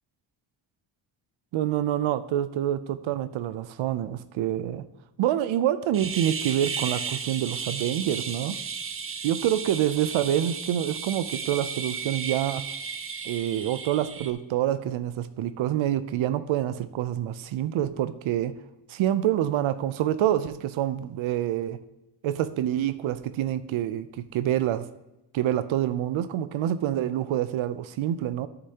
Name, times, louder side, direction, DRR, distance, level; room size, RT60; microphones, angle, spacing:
voice 1, 1.5-4.9 5.2-8.6 9.2-12.7 13.2-18.6 18.9-21.8 22.2-24.1 24.3-24.9 25.3-28.5, right 11 dB, 75° right, 0.6 m, -27 dB
sound 1, 5.9-14.3, right 6 dB, 30° right, 0.5 m, -34 dB
13.0 x 6.8 x 2.9 m
wide cardioid pair, 160°, 47 cm